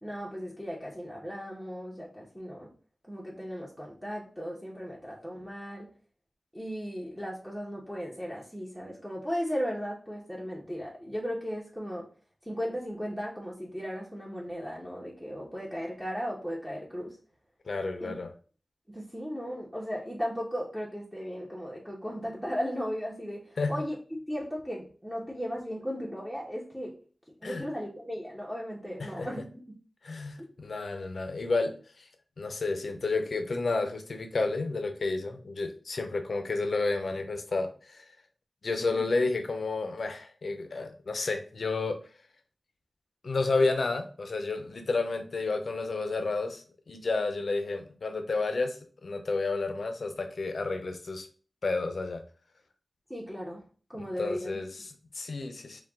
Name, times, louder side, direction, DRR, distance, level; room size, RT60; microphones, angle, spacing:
voice 1, 0.0-2.7 3.0-5.9 6.5-12.0 12.5-17.2 18.0-18.1 18.9-24.0 24.3-26.9 27.4-29.5 38.8-39.0 53.1-53.6 53.9-54.6, equal, ahead, -5 dB, 1.1 m, -36 dB
voice 2, 17.7-18.3 23.6-23.8 27.4-27.6 29.0-29.3 30.0-32.0 32.4-38.0 38.6-42.0 43.2-51.3 51.6-52.2 54.0-55.8, left 3 dB, 75° left, 7 dB, 0.6 m, -31 dB
4.5 x 2.3 x 3.6 m, 0.39 s
wide cardioid pair, 60°, 0 cm